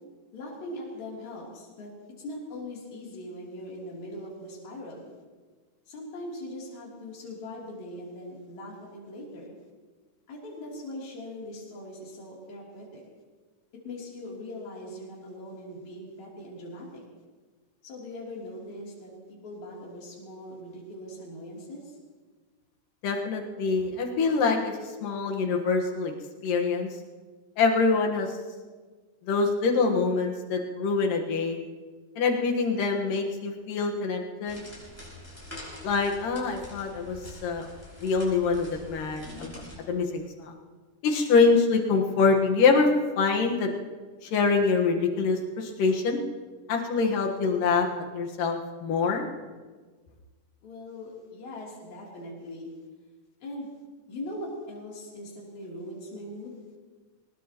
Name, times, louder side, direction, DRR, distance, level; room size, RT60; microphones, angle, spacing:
voice 1, 0.3-1.9 2.2-5.0 5.9-9.5 10.3-13.0 13.8-17.0 17.8-21.9 50.6-52.7 53.4-53.7 54.1-56.6, left 1 dB, 60° left, -4 dB, 4.5 m, -40 dB
voice 2, 23.0-26.1 26.4-26.9 27.6-28.3 29.3-31.6 32.2-34.6 35.8-37.7 38.0-39.6 39.9-40.5 41.0-42.9 43.2-43.7 44.2-46.2 46.7-49.3, left 4 dB, 90° left, 2 dB, 3.1 m, -25 dB
sound 1, 34.5-39.8, left 1 dB, 5° left, 5.5 m, -45 dB
22.5 x 20.0 x 3.0 m, 1.4 s
omnidirectional pair, 3.7 m